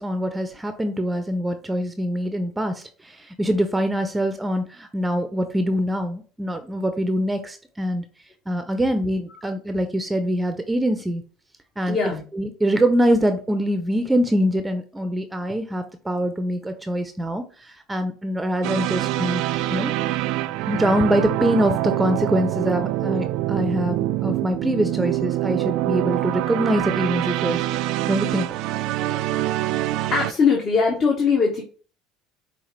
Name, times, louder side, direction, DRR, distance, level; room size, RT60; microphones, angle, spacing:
voice 1, 0.0-8.0 8.5-11.2 11.8-12.0 12.3-17.4 17.9-19.4 19.7-19.9 20.7-24.0 24.2-27.6 28.1-28.5, equal, 10° right, 7 dB, 0.5 m, -24 dB
voice 2, 11.9-12.2 30.1-31.6, left 5 dB, 45° left, 0 dB, 1.1 m, -20 dB
sound 1, 18.6-30.3, right 15 dB, 65° right, 0.3 m, -25 dB
5.6 x 2.4 x 3.2 m, 0.39 s
hypercardioid pair, 75°, 0 cm